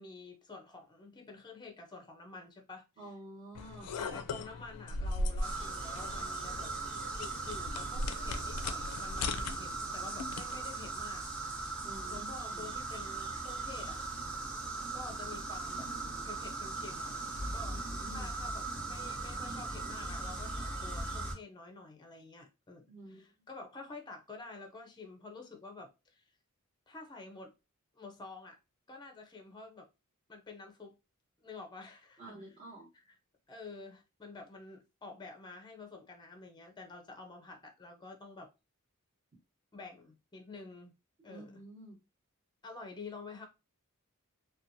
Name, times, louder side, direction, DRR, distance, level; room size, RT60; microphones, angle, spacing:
voice 1, 0.0-2.8 3.9-6.7 7.2-11.3 12.1-14.0 14.9-15.9 16.2-17.1 17.5-17.8 18.1-26.2 26.9-27.5 27.9-28.6 28.9-29.9 30.3-31.0 31.4-32.4 33.1-33.2 33.5-38.5 39.7-40.9 41.2-41.6 42.6-43.5, left 3 dB, 20° left, 0.4 m, -49 dB
voice 2, 3.0-3.9 11.8-12.7 17.6-18.3 22.9-23.2 32.2-32.9 41.3-42.0, right 1 dB, 35° right, 1.0 m, -50 dB
sound 1, 3.5-10.7, left 2 dB, 90° left, 0.4 m, -39 dB
sound 2, 5.4-21.3, right 3 dB, 60° right, 1.1 m, -39 dB
2.9 x 2.2 x 2.6 m
head